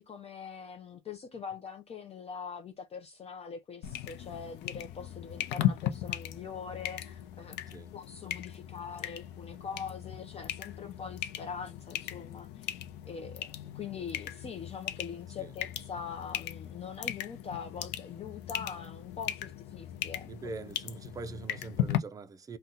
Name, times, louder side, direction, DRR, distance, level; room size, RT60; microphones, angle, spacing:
voice 1, 0.0-7.6 7.9-20.3, left 6 dB, 35° left, 0.5 m, -43 dB
sound 1, 3.8-22.0, left 12 dB, 85° left, 0.5 m, -37 dB
voice 2, 20.2-22.6, right 4 dB, 20° right, 0.4 m, -43 dB
2.7 x 2.2 x 3.6 m
cardioid pair, 110°, 17 cm